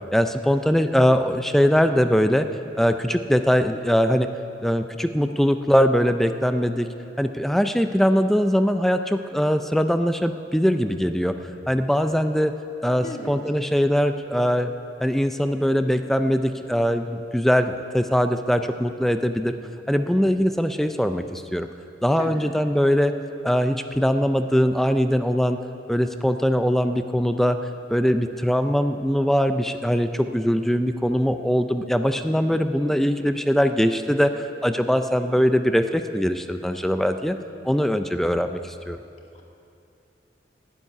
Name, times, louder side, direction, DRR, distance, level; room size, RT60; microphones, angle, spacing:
voice 1, 0.1-2.5 2.8-4.3 4.6-6.9 7.2-11.3 11.7-12.5 12.8-14.7 15.0-19.5 19.9-21.7 22.0-23.1 23.4-25.6 25.9-27.6 27.9-37.4 37.6-39.0, equal, ahead, 8 dB, 0.4 m, -21 dB
voice 2, 13.0-13.3 22.2-22.5 39.3-39.4, left 1 dB, 40° left, 0 dB, 1.9 m, -35 dB
12.0 x 8.2 x 9.9 m, 2.6 s
head